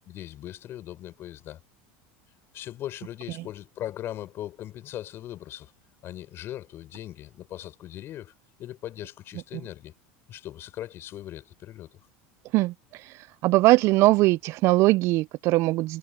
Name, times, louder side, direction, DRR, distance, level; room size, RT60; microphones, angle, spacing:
voice 1, 0.1-1.6 2.5-5.7 6.0-8.3 8.6-9.9 10.3-12.0, left 12 dB, 45° left, 5.7 m, -39 dB
voice 2, 13.4-16.0, right 19 dB, 50° right, 0.4 m, -20 dB
supercardioid pair, 115°, 6 cm